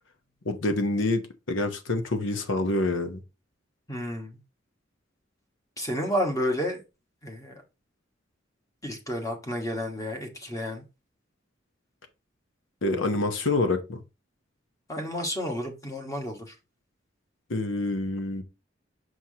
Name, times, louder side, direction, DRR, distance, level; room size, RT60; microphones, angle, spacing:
voice 1, 0.4-3.2 12.8-14.0 17.5-18.4, left 2 dB, 80° left, 0.9 m, -27 dB
voice 2, 3.9-4.4 5.8-6.8 7.2-7.6 8.8-10.8 14.9-16.5, equal, 15° left, 1.3 m, -31 dB
6.3 x 5.8 x 2.8 m
head